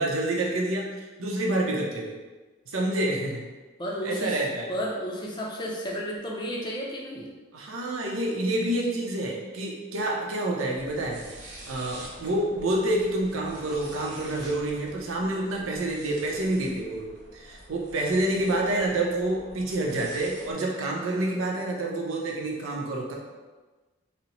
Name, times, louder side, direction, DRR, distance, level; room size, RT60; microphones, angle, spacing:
voice 1, 0.0-2.2 2.7-3.4 4.0-4.7 7.5-23.1, right 1 dB, 90° right, -1 dB, 0.6 m, -28 dB
voice 2, 3.8-4.4 4.7-7.3, equal, 20° left, -2 dB, 0.4 m, -32 dB
sound 1, 10.8-20.5, right 1 dB, 55° right, 0.7 m, -47 dB
4.0 x 2.0 x 2.9 m, 1.3 s
head